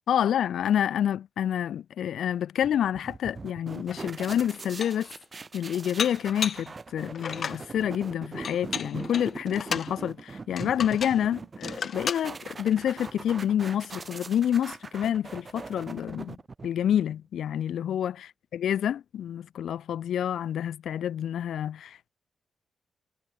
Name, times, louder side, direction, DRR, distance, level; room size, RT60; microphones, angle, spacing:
voice 1, 0.1-5.1 5.5-16.4 16.6-22.1, left 10 dB, 90° left, 1.3 m, -28 dB
sound 1, 2.6-17.0, right 4 dB, 30° right, 1.0 m, -41 dB
Dishes pots and pans, 3.9-4.0 4.5-5.1 6.0-6.7 7.1-7.6 8.4-9.9 10.6-11.2 11.6-12.3, left 6 dB, 55° left, 1.3 m, -34 dB
wide cardioid pair, 125°, 0 cm